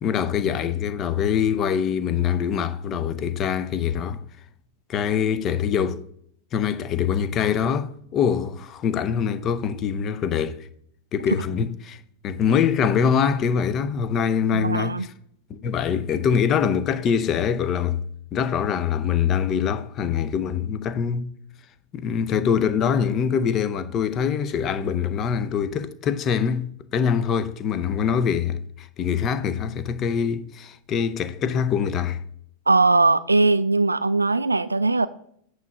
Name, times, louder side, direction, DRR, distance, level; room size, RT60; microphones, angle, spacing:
voice 1, 0.0-4.2 4.9-6.0 6.5-10.7 11.1-12.0 12.2-15.1 15.6-18.0 18.3-21.3 21.9-32.2, left 7 dB, 30° left, 0.6 m, -24 dB
voice 2, 14.5-15.1 32.7-35.1, right 3 dB, 80° right, 0.3 m, -20 dB
9.3 x 3.2 x 5.9 m
figure-of-eight pair, 90°, 0 cm